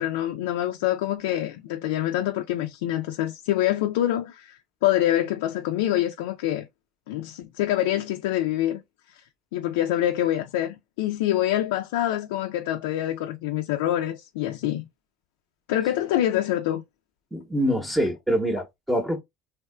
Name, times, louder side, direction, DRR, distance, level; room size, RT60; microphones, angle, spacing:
voice 1, 0.0-6.7 7.1-8.8 9.1-9.2 9.5-14.9 15.7-16.8, left 13 dB, 80° left, 0.4 m, -26 dB
voice 2, 17.3-19.2, equal, 10° right, 0.9 m, -25 dB
3.2 x 2.8 x 2.2 m
hypercardioid pair, 75°, 0 cm